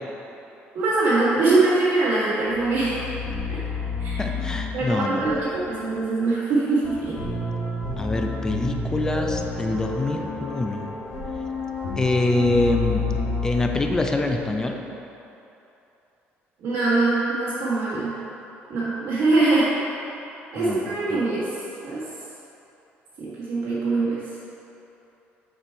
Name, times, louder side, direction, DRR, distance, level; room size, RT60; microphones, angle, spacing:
voice 1, 0.7-3.1 4.0-4.2 4.7-7.2 16.6-18.1 18.7-19.7 20.5-21.5 21.8-22.0 23.2-24.2, right 3 dB, 70° right, -11 dB, 1.5 m, -22 dB
sound 1, 2.5-14.5, left 3 dB, 35° left, 1.4 m, -30 dB
voice 2, 4.2-5.3 8.0-10.9 12.0-13.1 13.4-14.8 20.6-20.9 21.1-21.2, left 2 dB, 15° left, 3 dB, 0.4 m, -25 dB
6.8 x 4.3 x 4.6 m, 3.0 s
cardioid pair, 155°, 5 cm